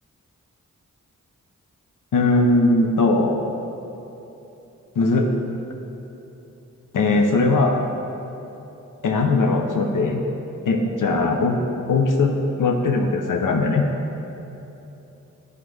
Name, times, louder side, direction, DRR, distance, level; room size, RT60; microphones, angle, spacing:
voice 1, 2.1-3.4 5.0-5.3 6.9-7.8 9.0-10.2 10.7-11.6 11.9-12.3 12.6-13.9, left 3 dB, 75° left, 2 dB, 0.7 m, -19 dB
9.0 x 3.2 x 4.7 m, 3.0 s
cardioid pair, 40°, 31 cm